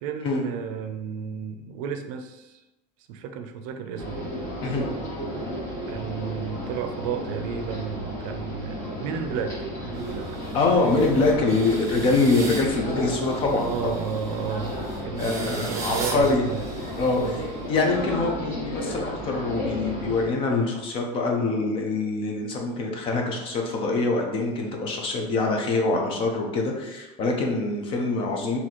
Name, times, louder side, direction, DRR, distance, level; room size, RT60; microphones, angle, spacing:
voice 1, 0.0-2.6 3.1-4.3 5.9-9.6 9.8-10.3 13.5-14.8 15.0-16.6 17.2-17.4, right 7 dB, 75° right, 7 dB, 0.5 m, -32 dB
sound 1, 4.0-20.3, equal, 15° left, 1.0 m, -33 dB
sound 2, 9.9-17.9, right 3 dB, 20° right, 0.5 m, -39 dB
voice 2, 10.5-13.7 15.2-16.4 17.0-28.6, left 3 dB, 30° left, 1 dB, 0.5 m, -24 dB
2.9 x 2.7 x 4.0 m, 0.97 s
cardioid pair, 175°, 17 cm